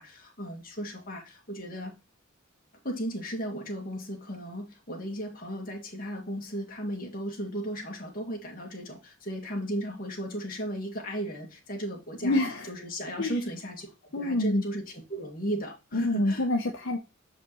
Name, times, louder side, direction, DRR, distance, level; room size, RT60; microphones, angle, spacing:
voice 1, 0.0-1.9 2.8-12.4 12.7-16.5, equal, 40° left, 0 dB, 2.1 m, -35 dB
voice 2, 12.2-12.7 13.2-13.3 14.1-14.6 15.9-17.0, left 1 dB, 65° left, 1 dB, 1.0 m, -26 dB
6.8 x 5.1 x 3.1 m, 0.27 s
head